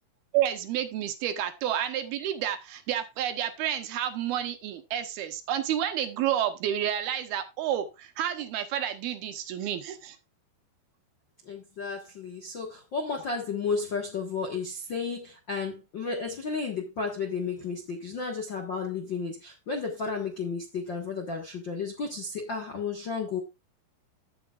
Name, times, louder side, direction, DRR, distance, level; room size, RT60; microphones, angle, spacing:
voice 1, 0.3-10.2, right 10 dB, 75° right, 2.8 m, -30 dB
voice 2, 11.4-23.4, left 4 dB, 55° left, 1.2 m, -33 dB
16.5 x 7.0 x 2.5 m
omnidirectional pair, 4.7 m